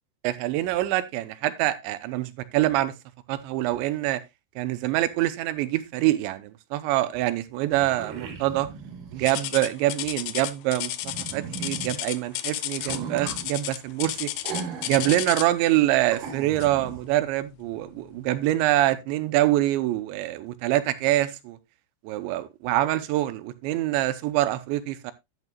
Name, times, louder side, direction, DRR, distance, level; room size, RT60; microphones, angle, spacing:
voice 1, 0.2-2.9 3.3-4.2 4.6-8.7 9.1-14.3 14.9-21.6 22.0-25.1, right 15 dB, 90° right, 3.1 m, -25 dB
sound 1, 7.1-7.2 7.5-9.5 11.0-11.9 12.7-13.5 14.4-15.2 15.5-15.6 16.1-17.0, right 6 dB, 60° right, 2.8 m, -37 dB
sound 2, 9.3-15.6 16.6-16.9 17.4-17.5 18.2-18.3, left 14 dB, 80° left, 2.6 m, -32 dB
11.0 x 11.0 x 2.2 m
omnidirectional pair, 5.1 m